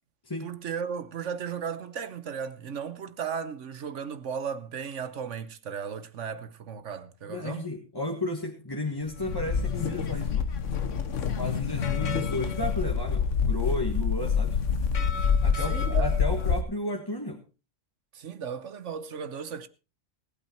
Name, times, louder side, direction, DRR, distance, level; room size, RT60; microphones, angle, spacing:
voice 1, 0.4-7.7 15.2-16.1 18.1-19.7, right 7 dB, 75° right, 1.3 m, -35 dB
voice 2, 7.3-10.5 11.3-14.6 15.4-17.4, left 1 dB, 20° left, 1.6 m, -33 dB
sound 1, 9.1-16.6, left 6 dB, 75° left, 1.5 m, -27 dB
19.0 x 8.8 x 4.3 m
omnidirectional pair, 1.3 m